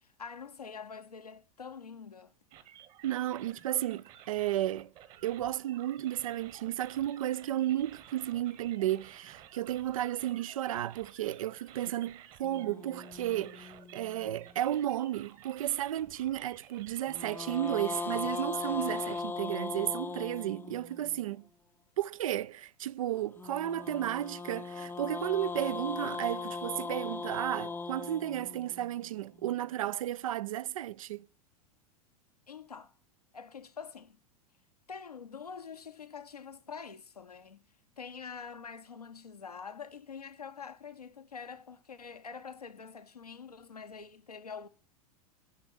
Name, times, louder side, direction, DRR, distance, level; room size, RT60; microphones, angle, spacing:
voice 1, 0.0-2.3 32.5-32.9 33.3-34.2 34.9-37.6 38.0-44.7, left 6 dB, 80° left, 0.9 m, -45 dB
sound 1, 2.5-19.2, right 11 dB, 40° right, 1.3 m, -54 dB
voice 2, 3.0-4.9 5.2-21.4 22.0-31.3, right 13 dB, 60° right, 0.4 m, -33 dB
sound 2, 12.4-14.8 17.1-21.2 23.4-29.6, left 4 dB, 10° left, 0.6 m, -39 dB
9.6 x 6.0 x 8.3 m
figure-of-eight pair, 90°, 19 cm